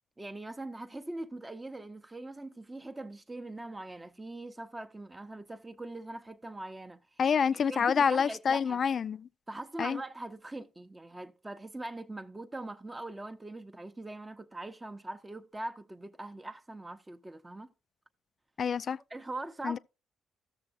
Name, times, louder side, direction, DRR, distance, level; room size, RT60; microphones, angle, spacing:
voice 1, 0.2-7.2 7.7-8.8 9.5-17.7 19.1-19.8, right 2 dB, 15° right, 0.6 m, -42 dB
voice 2, 7.2-9.3 9.8-10.0 18.6-19.0 19.6-19.8, left 6 dB, 50° left, 0.3 m, -27 dB
14.5 x 6.8 x 2.5 m
cardioid pair, 90°, 0 cm